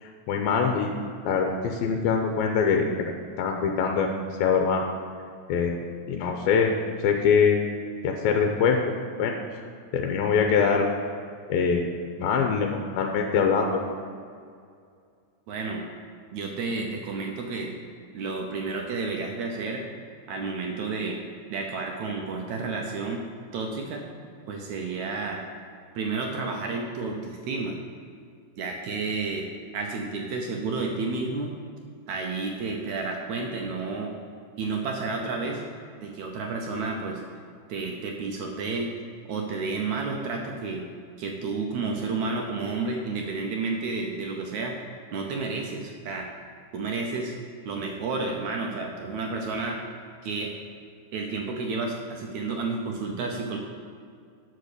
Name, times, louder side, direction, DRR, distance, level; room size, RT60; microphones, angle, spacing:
voice 1, 0.0-0.9 1.3-4.1 4.4-4.8 5.5-5.8 6.1-6.7 7.0-7.6 8.0-8.8 9.2-9.4 9.9-10.9 11.5-11.9 12.2-13.7, left 6 dB, 85° left, 3 dB, 2.4 m, -23 dB
voice 2, 15.5-15.8 16.3-17.7 18.1-19.9 20.3-21.2 21.5-23.2 23.5-24.0 24.5-25.4 26.0-27.8 28.6-29.5 29.7-31.5 32.1-34.1 34.6-35.6 36.0-37.2 37.7-38.9 39.3-40.8 41.2-44.7 45.1-46.3 46.7-47.3 47.7-49.8 50.2-50.5 51.1-53.6, right 3 dB, 80° right, 1 dB, 1.7 m, -31 dB
8.8 x 6.3 x 6.7 m, 2.2 s
omnidirectional pair, 4.3 m